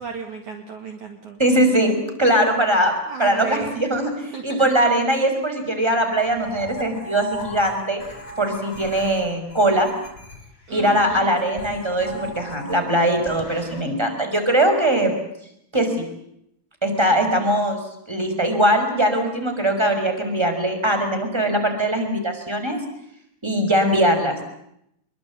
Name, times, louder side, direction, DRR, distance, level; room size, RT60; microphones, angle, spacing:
voice 1, 0.0-1.4 3.1-3.8 4.3-4.4 10.7-11.4, right 6 dB, 55° right, 4 dB, 3.2 m, -34 dB
voice 2, 1.4-1.9 2.2-2.9 3.2-8.0 8.4-9.9 10.7-15.1 15.7-16.1 16.8-17.8 18.1-22.8 23.4-24.4, right 1 dB, 5° right, 5 dB, 5.2 m, -21 dB
sound 1, 6.1-13.8, left 1 dB, 20° left, 4.6 m, -38 dB
25.5 x 23.0 x 8.6 m, 0.77 s
omnidirectional pair, 4.6 m